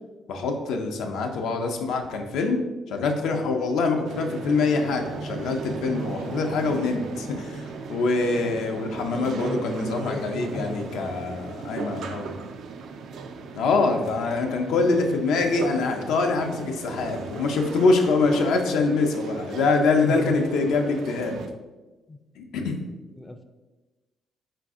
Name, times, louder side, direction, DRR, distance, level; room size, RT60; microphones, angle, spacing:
voice 1, 0.3-2.6 2.9-12.3 13.6-21.4 22.4-22.8, left 3 dB, 85° left, 4 dB, 0.5 m, -24 dB
sound 1, 4.0-21.5, right 4 dB, 70° right, 0.3 m, -37 dB
voice 2, 8.3-11.1 20.0-20.7 22.1-22.2 23.2-23.4, left 1 dB, 15° left, 6 dB, 0.3 m, -36 dB
4.0 x 2.6 x 3.5 m, 1.2 s
cardioid pair, 90°, 0 cm